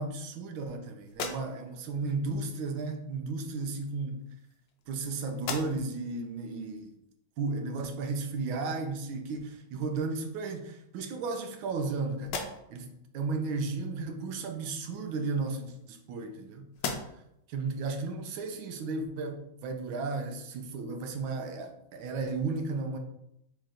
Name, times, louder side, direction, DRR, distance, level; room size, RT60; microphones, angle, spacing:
voice 1, 0.0-4.2 4.9-6.9 7.4-12.4 12.7-16.7 17.5-23.0, right 3 dB, 85° right, 5 dB, 1.4 m, -34 dB
sound 1, 1.1-1.9 3.0-3.2 4.1-5.0 5.3-6.1 6.6-6.7 9.3-9.4 9.9-10.6 11.1-11.9 12.2-12.9 14.9-16.4 16.7-17.4, left 5 dB, 70° left, 1.2 m, -40 dB
4.5 x 3.0 x 3.7 m, 0.80 s
omnidirectional pair, 2.2 m